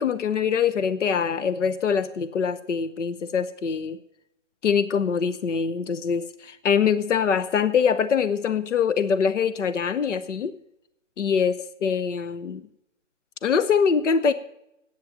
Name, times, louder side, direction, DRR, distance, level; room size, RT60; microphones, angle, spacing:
voice 1, 0.0-4.0 4.6-10.5 11.2-12.6 13.4-14.3, left 6 dB, 70° left, 13 dB, 0.8 m, -23 dB
10.5 x 8.5 x 7.4 m, 0.82 s
hypercardioid pair, 175°, 38 cm